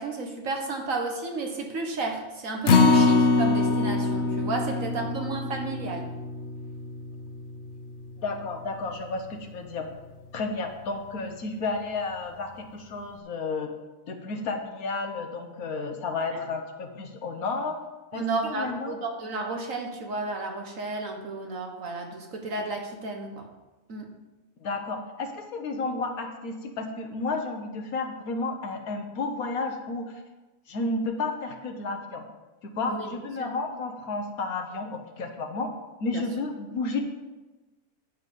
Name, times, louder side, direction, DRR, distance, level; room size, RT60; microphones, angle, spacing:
voice 1, 0.0-6.0 16.3-16.4 18.1-23.4 23.9-24.1 32.9-33.1 33.4-33.5 36.1-36.2, right 3 dB, 65° right, 2 dB, 1.7 m, -32 dB
Acoustic guitar, 2.7-9.0 9.4-9.5 9.9-10.0, left 3 dB, 55° left, 1.0 m, -24 dB
voice 2, 4.7-5.0 8.2-9.9 10.3-13.7 14.1-17.8 18.1-19.0 24.6-30.2 30.7-32.2 32.6-35.7 36.0-37.0, left 3 dB, 75° left, 4 dB, 1.5 m, -32 dB
11.0 x 7.4 x 5.3 m, 1.1 s
omnidirectional pair, 1.5 m